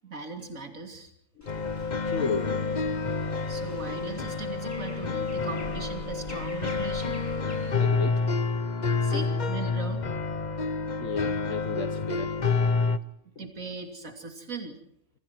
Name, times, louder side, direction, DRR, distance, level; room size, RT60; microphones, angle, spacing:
voice 1, 0.0-1.1 3.5-7.2 7.6-7.7 9.0-10.0 13.4-14.8, right 3 dB, 80° right, 4 dB, 3.3 m, -38 dB
voice 2, 1.4-1.7 2.0-2.6 7.8-8.3 11.0-12.4, left 5 dB, 70° left, 7 dB, 1.8 m, -33 dB
sound 1, 1.4-7.7, equal, 10° left, 6.3 m, -46 dB
sound 2, 1.5-13.0, left 4 dB, 35° left, 1.1 m, -28 dB
27.5 x 25.5 x 4.6 m, 0.70 s
omnidirectional pair, 1.4 m